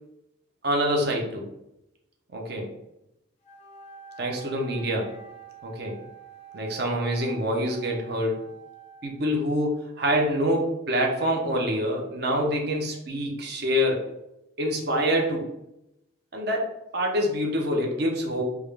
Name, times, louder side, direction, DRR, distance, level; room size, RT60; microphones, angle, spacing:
voice 1, 0.6-1.4 2.3-2.7 4.2-5.1 5.6-6.0 6.5-8.4 9.0-14.1 14.6-15.5 16.3-18.4, equal, 55° right, 0 dB, 0.7 m, -26 dB
Wind instrument woodwind instrument, 3.4-9.3, right 6 dB, 35° left, 0.4 m, -47 dB
3.5 x 2.4 x 3.3 m, 0.87 s
head